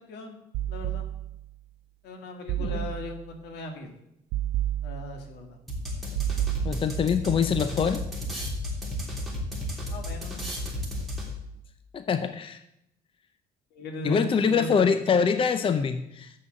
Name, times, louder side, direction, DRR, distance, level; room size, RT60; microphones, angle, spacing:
sound 1, 0.5-1.6 2.5-3.4 4.3-5.4 6.1-7.2, right 13 dB, 90° right, 0.4 m, -31 dB
voice 1, 0.7-1.1 2.0-3.9 4.8-5.6 9.9-10.5 13.7-14.8, left 1 dB, 80° left, 4 dB, 1.9 m, -38 dB
sound 2, 5.7-11.5, left 1 dB, ahead, 3.0 m, -33 dB
voice 2, 6.6-8.0 11.9-12.6 14.0-16.3, left 6 dB, 30° left, 10 dB, 0.6 m, -24 dB
7.6 x 6.2 x 7.5 m, 0.81 s
cardioid pair, 110°, 17 cm